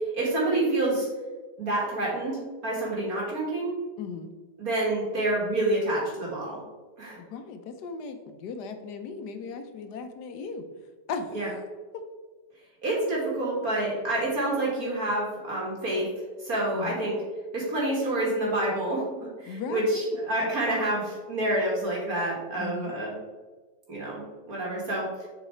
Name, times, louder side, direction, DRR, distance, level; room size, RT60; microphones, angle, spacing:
voice 1, 0.1-1.1 1.6-3.8 4.6-6.6 7.0-7.2 11.3-11.5 12.8-16.1 16.4-17.1 17.5-23.1 23.9-25.3, right 1 dB, 60° right, -4 dB, 2.0 m, -28 dB
voice 2, 4.0-4.3 7.2-10.7 11.1-11.4 11.9-12.0 16.7-17.0 19.5-20.0 22.6-22.9, left 5 dB, 85° left, 7 dB, 1.3 m, -37 dB
7.0 x 4.1 x 4.3 m, 1.3 s
omnidirectional pair, 1.8 m